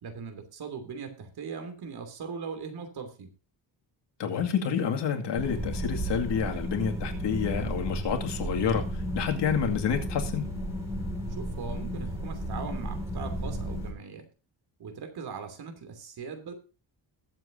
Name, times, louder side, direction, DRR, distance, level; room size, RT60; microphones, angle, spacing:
voice 1, 0.0-3.3 11.3-14.3 14.8-16.5, right 5 dB, 55° right, 2.9 m, -40 dB
voice 2, 4.2-10.5, left 7 dB, 70° left, 2.3 m, -29 dB
sound 1, 5.4-13.9, right 1 dB, 5° right, 4.8 m, -33 dB
21.5 x 7.6 x 2.7 m
cardioid pair, 150°, 44 cm